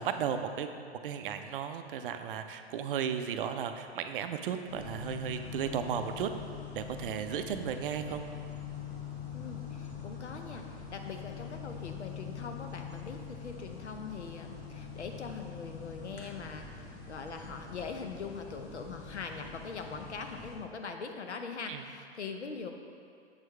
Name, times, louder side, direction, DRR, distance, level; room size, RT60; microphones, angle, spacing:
voice 1, 0.0-6.3 6.7-8.2 21.7-21.8, right 8 dB, 55° right, 8 dB, 0.5 m, -35 dB
sound 1, 4.7-20.6, left 6 dB, 25° left, 0.9 m, -44 dB
voice 2, 9.3-22.7, left 5 dB, 85° left, 4 dB, 0.7 m, -42 dB
7.4 x 4.6 x 3.2 m, 2.2 s
figure-of-eight pair, 110°, 33 cm